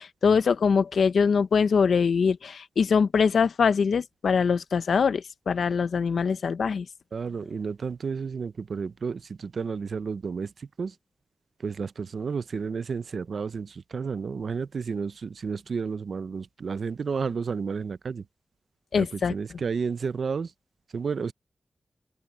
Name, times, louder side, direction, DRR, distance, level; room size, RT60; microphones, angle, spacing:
voice 1, 0.0-6.9 18.9-19.3, left 6 dB, 90° left, 0.8 m, -23 dB
voice 2, 7.1-10.9 11.6-18.3 18.9-20.5 20.9-21.3, right 5 dB, 80° right, 0.6 m, -31 dB
cardioid pair, 60°, 0 cm